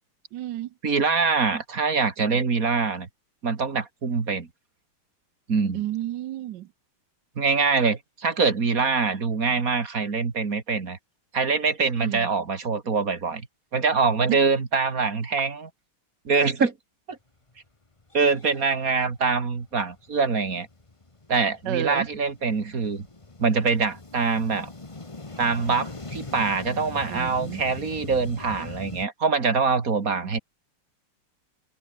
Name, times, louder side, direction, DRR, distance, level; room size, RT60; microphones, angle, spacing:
voice 1, 0.3-0.7 5.7-6.7 12.0-12.3 21.7-22.1 27.1-27.6 30.2-30.3, right 13 dB, 65° right, 1.2 m, -31 dB
voice 2, 0.8-3.1 3.4-4.5 5.5-5.8 7.4-11.0 11.3-13.4 13.7-15.7 16.3-16.7 17.1-17.2 18.1-20.7 21.3-23.1 23.4-24.7 25.4-30.4, right 4 dB, 40° right, 2.6 m, -24 dB
sound 1, 17.5-17.6 18.0-29.0, left 3 dB, 15° left, 1.3 m, -41 dB
omnidirectional pair, 2.3 m